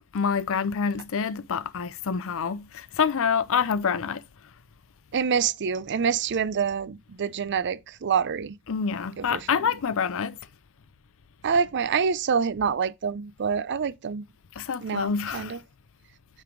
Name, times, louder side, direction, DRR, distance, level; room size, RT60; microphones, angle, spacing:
voice 1, 0.1-4.2 8.7-10.4 14.6-15.6, left 6 dB, 65° left, 0.6 m, -27 dB
voice 2, 5.1-8.5 9.3-9.4 11.4-14.2 14.8-15.6, right 6 dB, 55° right, 0.5 m, -26 dB
9.2 x 3.3 x 4.9 m
head